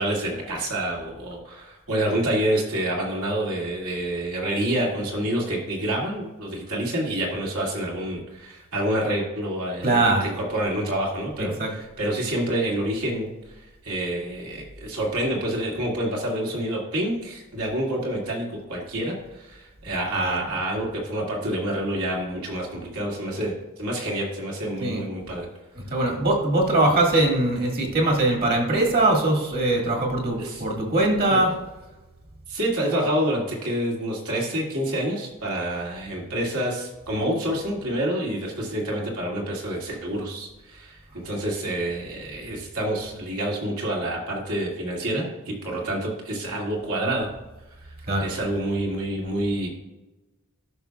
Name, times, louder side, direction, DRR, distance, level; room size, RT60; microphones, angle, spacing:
voice 1, 0.0-23.5 23.8-25.5 30.4-30.6 31.3-31.4 32.5-41.0 41.2-47.3 47.8-47.9 48.2-49.7, right 1 dB, 75° right, -2 dB, 2.2 m, -28 dB
voice 2, 9.8-10.2 11.6-11.7 20.1-20.4 24.8-25.0 25.8-31.5 48.1-48.3, right 2 dB, 45° right, 0 dB, 1.8 m, -21 dB
12.5 x 5.9 x 2.3 m, 1.1 s
head